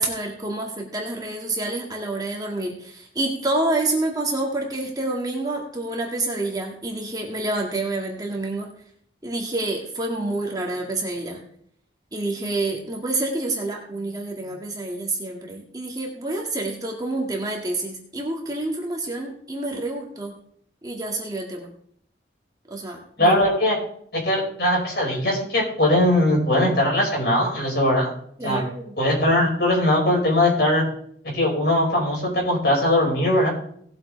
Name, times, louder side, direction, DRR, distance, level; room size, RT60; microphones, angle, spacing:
voice 1, 0.0-8.7 9.2-11.4 12.1-20.3 20.8-21.7 22.7-23.3 28.4-28.9, right 2 dB, 20° right, 0 dB, 2.0 m, -28 dB
voice 2, 23.2-23.8 24.1-28.1 28.4-28.6 29.0-30.8 31.3-33.5, left 1 dB, 60° left, -2 dB, 5.3 m, -20 dB
18.5 x 7.7 x 3.4 m, 0.64 s
head